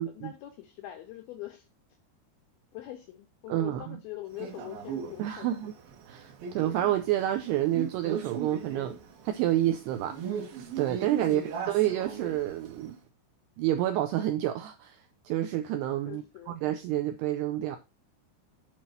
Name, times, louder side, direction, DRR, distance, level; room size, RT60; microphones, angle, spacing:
voice 1, 0.0-1.7 2.7-5.7 11.2-11.5 16.1-16.6, left 14 dB, 85° left, 2.1 m, -43 dB
voice 2, 3.5-4.0 5.2-5.7 6.1-9.0 9.2-10.4 10.8-11.4 11.7-13.0 13.6-17.8, right 13 dB, 90° right, 2.3 m, -29 dB
Male speech man speaking, 4.4-12.9, right 6 dB, 65° right, 2.6 m, -39 dB
8.1 x 4.8 x 5.6 m
omnidirectional pair, 5.4 m